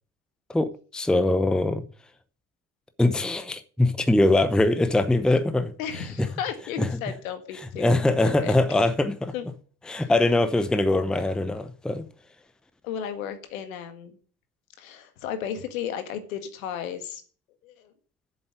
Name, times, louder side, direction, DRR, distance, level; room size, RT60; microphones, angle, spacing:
voice 1, 0.5-1.8 3.0-5.7 6.8-6.9 7.8-9.3 9.9-12.1, left 2 dB, ahead, 0.8 m, -22 dB
voice 2, 5.8-7.9 8.2-8.6 9.3-9.5 9.9-10.1 12.8-14.2 14.8-17.2 17.6-17.9, left 8 dB, 65° left, 1.8 m, -34 dB
8.0 x 7.3 x 7.9 m
figure-of-eight pair, 65°, 43 cm